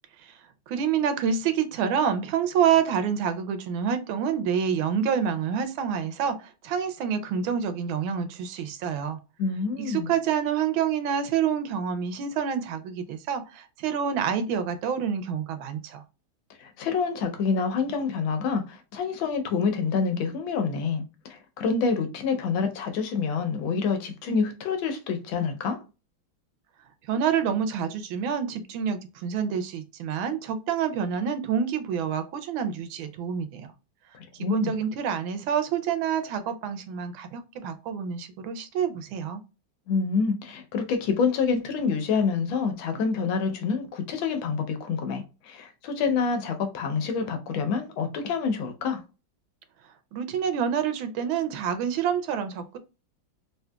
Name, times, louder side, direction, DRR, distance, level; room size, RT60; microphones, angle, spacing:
voice 1, 0.7-9.2 9.8-16.0 27.1-33.7 34.4-39.4 50.1-52.8, right 7 dB, 80° right, 1.3 m, -27 dB
voice 2, 9.4-10.1 16.6-25.8 34.1-34.7 39.9-49.0, left 5 dB, 75° left, 1.4 m, -27 dB
3.8 x 2.7 x 2.2 m
omnidirectional pair, 2.2 m